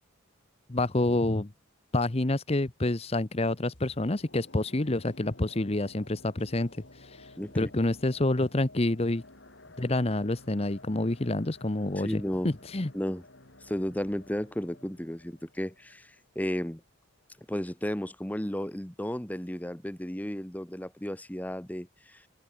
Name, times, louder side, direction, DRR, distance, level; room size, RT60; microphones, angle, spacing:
voice 1, 0.7-1.5 1.9-9.2 9.8-12.9, left 2 dB, 30° left, 0.9 m, -28 dB
sound 1, 3.7-16.8 17.1-17.2, left 2 dB, 65° left, 4.6 m, -53 dB
voice 2, 7.3-7.7 12.0-12.5 12.9-13.2 13.6-16.8 17.5-22.2, equal, 10° left, 1.1 m, -33 dB
open air
head